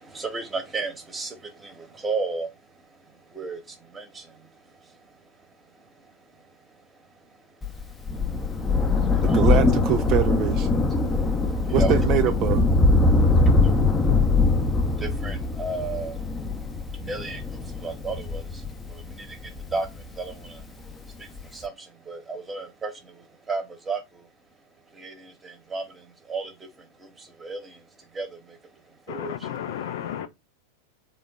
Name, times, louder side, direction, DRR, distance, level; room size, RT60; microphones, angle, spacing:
voice 1, 0.0-5.2 5.6-7.4 7.7-9.4 11.1-11.9 13.2-24.3 24.9-27.9 28.1-29.6, right 4 dB, 15° right, 1.0 m, -36 dB
Thunder, 7.6-20.5 21.4-21.5, left 3 dB, 15° left, 0.6 m, -22 dB
voice 2, 9.2-10.8 11.7-12.7, right 12 dB, 35° right, 0.4 m, -24 dB
voice 3, 29.1-30.3, left 10 dB, 55° left, 0.4 m, -33 dB
3.6 x 2.2 x 3.5 m
figure-of-eight pair, 90°, 0 cm